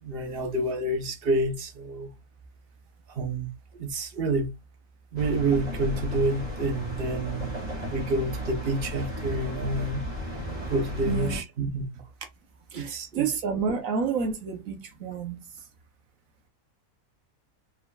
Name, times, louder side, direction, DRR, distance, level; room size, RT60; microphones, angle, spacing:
voice 1, 0.0-2.1 3.1-3.5 3.8-4.5 5.1-10.0 10.7-11.9 12.7-13.3, right 2 dB, 40° right, 1.0 m, -28 dB
sound 1, 5.2-11.4, equal, 25° right, 2.6 m, -34 dB
voice 2, 11.1-11.4 12.7-15.4, right 5 dB, 60° right, 1.2 m, -29 dB
4.6 x 4.0 x 2.3 m
omnidirectional pair, 1.7 m